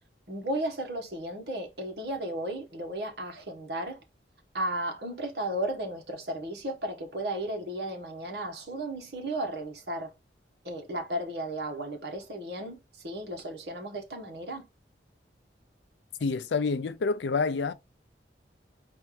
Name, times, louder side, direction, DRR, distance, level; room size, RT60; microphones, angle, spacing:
voice 1, 0.3-4.0 4.5-10.1 10.6-12.8 13.0-14.6, right 1 dB, 65° right, 1.3 m, -34 dB
voice 2, 16.2-17.7, left 4 dB, 80° left, 0.5 m, -28 dB
4.4 x 2.6 x 4.6 m
head